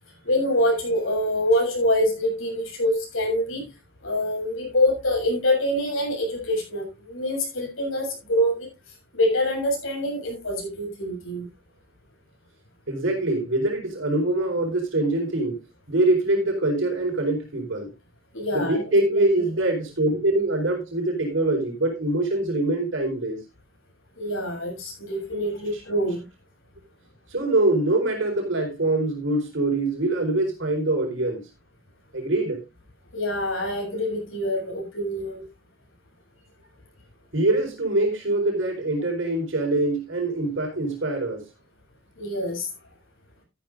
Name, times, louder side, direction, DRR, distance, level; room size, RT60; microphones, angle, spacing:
voice 1, 0.2-3.7 4.0-8.7 9.1-11.5 18.3-19.2 24.2-26.2 33.1-35.5 42.2-42.7, left 1 dB, 85° left, 7.0 m, -25 dB
voice 2, 12.9-15.6 15.9-17.9 18.5-23.4 25.7-25.8 27.3-31.4 32.1-32.6 37.3-41.4, right 2 dB, 75° right, 4.3 m, -24 dB
13.5 x 11.5 x 2.6 m
head